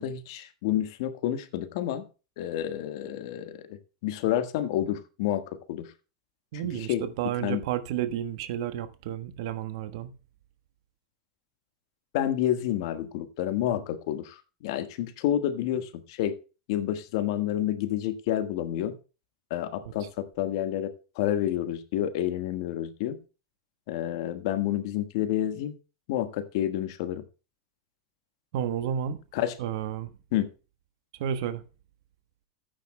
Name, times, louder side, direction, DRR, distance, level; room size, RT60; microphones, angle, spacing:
voice 1, 0.0-2.0 2.4-5.9 6.9-7.0 7.4-7.6 12.1-16.4 16.7-18.9 19.5-23.2 23.9-25.7 26.1-27.2 29.3-29.5 30.3-30.5, left 11 dB, 65° left, 1.4 m, -29 dB
voice 2, 6.5-10.1 19.8-20.1 28.5-29.2 29.6-30.1 31.2-31.6, right 10 dB, 65° right, 1.2 m, -31 dB
15.5 x 9.1 x 2.2 m
hypercardioid pair, 95°, 3 cm